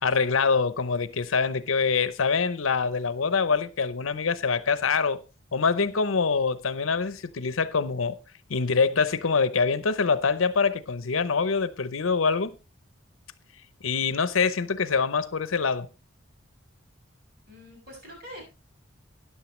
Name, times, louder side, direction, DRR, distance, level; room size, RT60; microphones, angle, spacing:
voice 1, 0.0-5.2 5.5-8.2 8.5-12.6 13.8-15.9, left 5 dB, 85° left, 0.8 m, -25 dB
voice 2, 17.5-18.5, equal, 50° right, 6.1 m, -44 dB
13.0 x 10.0 x 3.2 m
head